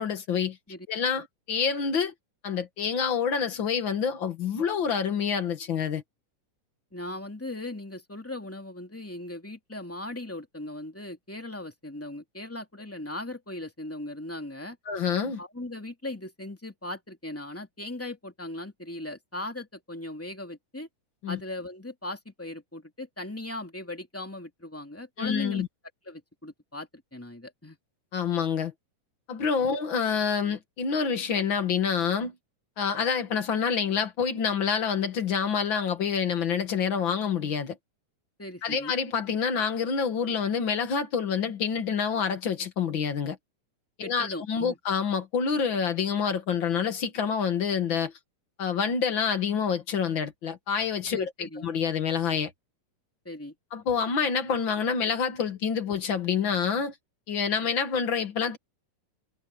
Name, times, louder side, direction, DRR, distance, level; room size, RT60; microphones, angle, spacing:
voice 1, 0.0-0.6 0.9-2.1 2.4-6.0 14.9-15.4 21.2-21.4 25.2-25.7 28.1-28.7 29.3-32.4 32.8-37.8 38.6-43.4 44.0-48.1 48.6-51.3 51.6-52.5 53.7-56.9 57.3-58.6, left 6 dB, 45° left, 1.8 m, -27 dB
voice 2, 6.9-14.8 15.4-20.9 21.3-25.6 26.1-27.8 29.6-29.8 38.4-38.9 44.0-44.8 51.1-51.7 53.2-53.5, left 1 dB, 5° left, 2.0 m, -38 dB
omnidirectional pair, 3.7 m